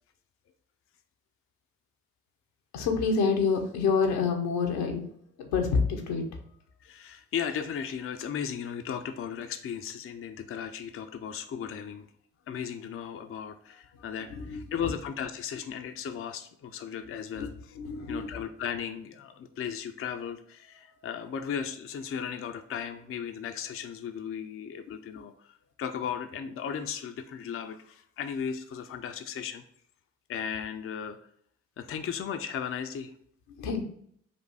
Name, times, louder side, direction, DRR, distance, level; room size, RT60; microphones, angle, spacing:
voice 1, 2.7-5.0 5.4-6.4 14.3-14.7 17.4-18.4 20.9-21.0 33.6-33.8, left 5 dB, 80° left, 3 dB, 0.8 m, -28 dB
voice 2, 6.8-12.1 12.5-17.8 18.1-29.6 30.3-31.2 31.8-33.1, left 7 dB, 35° left, 7 dB, 0.5 m, -36 dB
4.1 x 2.6 x 4.7 m, 0.66 s
hypercardioid pair, 45°, 37 cm